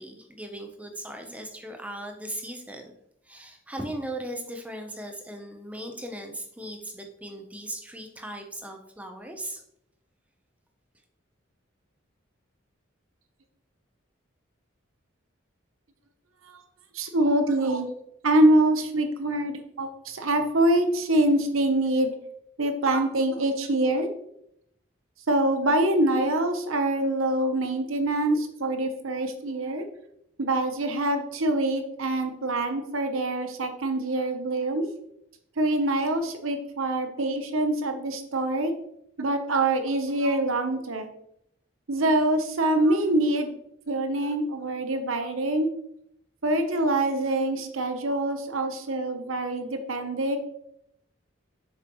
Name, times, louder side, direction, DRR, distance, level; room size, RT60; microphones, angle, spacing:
voice 1, 0.0-2.9 3.2-9.6, right 1 dB, 5° right, 4 dB, 0.8 m, -38 dB
voice 2, 16.9-17.9 18.2-22.1 22.6-24.1 25.3-29.9 30.4-34.9 35.6-38.7 39.2-41.1 41.9-43.5 43.9-45.7 46.4-50.4, right 1 dB, 85° right, 6 dB, 0.9 m, -25 dB
7.0 x 6.4 x 3.1 m, 0.76 s
head